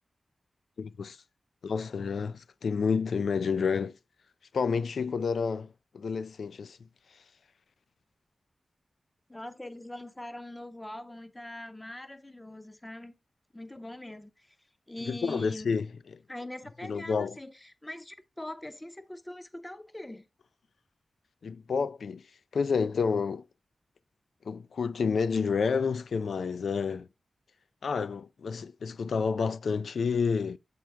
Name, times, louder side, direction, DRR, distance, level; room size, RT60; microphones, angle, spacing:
voice 1, 0.8-1.2 1.6-4.0 4.5-5.7 5.9-6.8 15.0-16.2 16.8-17.4 21.4-22.2 22.5-23.4 24.5-27.1 27.8-30.6, left 5 dB, 85° left, 0.4 m, -29 dB
voice 2, 9.3-13.1 13.5-14.6 14.9-15.7 16.3-20.2, left 1 dB, 15° left, 0.6 m, -42 dB
7.8 x 4.5 x 3.3 m
wide cardioid pair, 135°, 0 cm